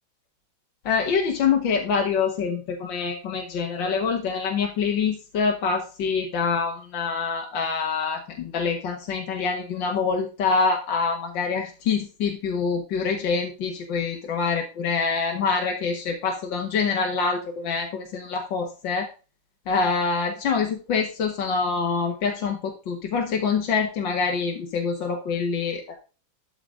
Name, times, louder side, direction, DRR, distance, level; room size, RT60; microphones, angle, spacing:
voice 1, 0.9-19.1 19.7-26.0, left 5 dB, 70° left, 2 dB, 2.0 m, -25 dB
12.5 x 5.1 x 3.7 m, 0.33 s
omnidirectional pair, 2.1 m